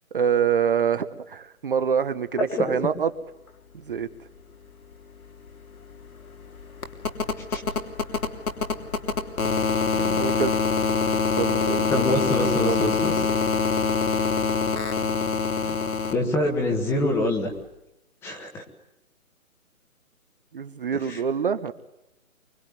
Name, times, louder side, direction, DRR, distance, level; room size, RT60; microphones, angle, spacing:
voice 1, 0.1-3.1 3.7-4.1 10.0-10.5 10.9-12.1 12.4-12.9 20.5-21.7, right 7 dB, 40° right, 11 dB, 1.1 m, -26 dB
sound 1, 4.9-5.0 5.2-16.1 17.6-17.7, left 5 dB, 80° left, 3.4 m, -25 dB
voice 2, 11.9-13.1 15.7-17.5 18.2-18.6 21.1-21.2, left 1 dB, 5° left, 3 dB, 1.4 m, -25 dB
24.5 x 23.5 x 9.6 m, 0.88 s
hypercardioid pair, 165°, 42 cm